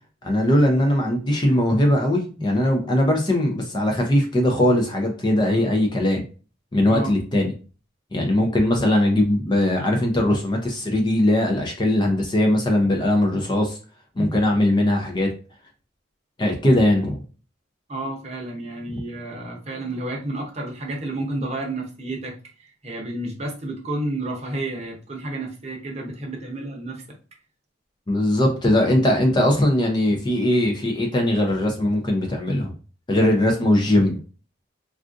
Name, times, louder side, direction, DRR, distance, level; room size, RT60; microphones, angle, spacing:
voice 1, 0.2-6.2 6.7-7.5 8.1-13.8 14.2-15.3 16.4-17.2 18.9-19.0 28.1-32.7 33.1-34.2, left 1 dB, 25° left, 2 dB, 0.5 m, -20 dB
voice 2, 17.9-22.3 22.8-27.0, right 1 dB, 35° right, 0 dB, 0.8 m, -30 dB
3.5 x 2.4 x 2.5 m, 0.36 s
head